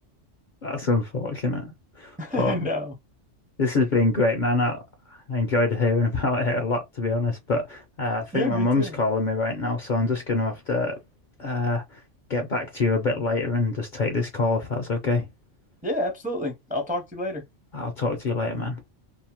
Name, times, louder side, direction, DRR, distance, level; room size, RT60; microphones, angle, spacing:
voice 1, 0.6-2.7 3.6-4.8 5.1-11.0 11.4-12.0 12.3-15.3 17.7-18.8, left 3 dB, 55° left, 0.6 m, -25 dB
voice 2, 2.2-2.9 8.3-8.9 15.8-17.4, left 1 dB, 10° right, 0.4 m, -29 dB
2.7 x 2.0 x 2.8 m
omnidirectional pair, 1.2 m